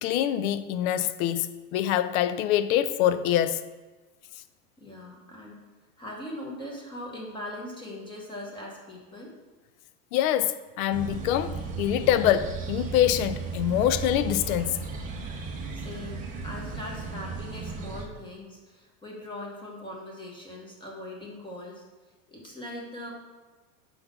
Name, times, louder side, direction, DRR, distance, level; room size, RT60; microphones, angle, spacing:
voice 1, 0.0-3.6 10.1-14.8, left 11 dB, 65° left, 0.5 m, -25 dB
voice 2, 4.8-5.6 6.0-9.3 15.7-21.8 22.3-23.1, left 1 dB, 10° left, 0.8 m, -40 dB
sound 1, 10.9-18.1, right 4 dB, 20° right, 0.5 m, -35 dB
5.4 x 4.0 x 5.7 m
supercardioid pair, 145°, 47 cm